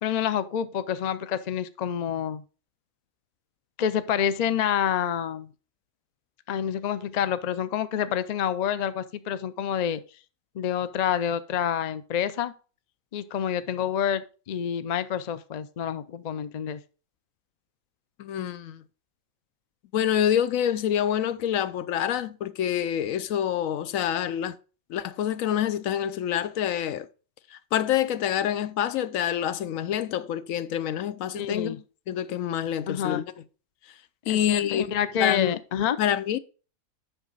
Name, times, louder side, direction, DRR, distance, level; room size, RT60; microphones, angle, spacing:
voice 1, 0.0-2.4 3.8-5.5 6.5-10.0 10.5-12.5 13.1-16.8 31.3-31.8 32.9-33.2 34.3-36.0, left 9 dB, 60° left, 0.4 m, -28 dB
voice 2, 18.2-18.8 19.9-24.6 24.9-27.1 27.5-33.2 34.3-34.8 35.2-35.6 36.0-36.4, left 10 dB, 80° left, 1.0 m, -27 dB
8.1 x 6.0 x 3.9 m
omnidirectional pair, 1.4 m